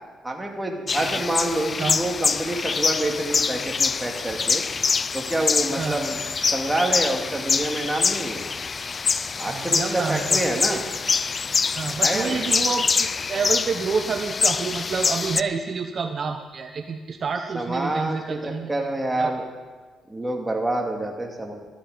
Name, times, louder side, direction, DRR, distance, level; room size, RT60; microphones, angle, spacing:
voice 1, 0.2-4.6 5.1-6.2 6.5-8.4 9.4-10.8 12.0-12.4 17.5-19.4 20.1-21.5, right 1 dB, 10° right, 1 dB, 2.4 m, -27 dB
sound 1, 0.9-15.4, left 5 dB, 35° left, 0.4 m, -25 dB
voice 2, 1.8-2.3 5.8-6.1 9.5-10.8 11.8-18.7 19.2-19.3, right 5 dB, 45° right, 5 dB, 0.8 m, -29 dB
13.5 x 13.5 x 5.1 m, 1.4 s
cardioid pair, 90°, 0 cm